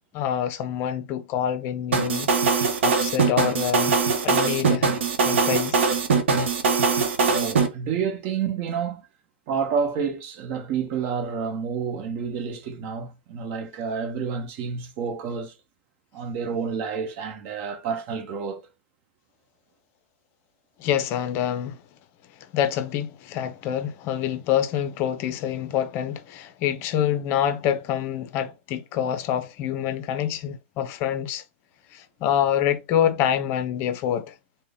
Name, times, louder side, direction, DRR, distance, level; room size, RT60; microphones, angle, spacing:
voice 1, 0.1-4.9 5.3-5.8 20.8-21.8 22.5-31.4 31.9-34.3, left 10 dB, 35° left, 0.5 m, -26 dB
sound 1, 1.9-7.7, right 5 dB, 70° right, 0.8 m, -21 dB
voice 2, 7.3-9.1 9.5-15.5 16.1-18.7, right 6 dB, 40° right, 0.9 m, -29 dB
3.7 x 2.1 x 3.5 m
hypercardioid pair, 120°, 7 cm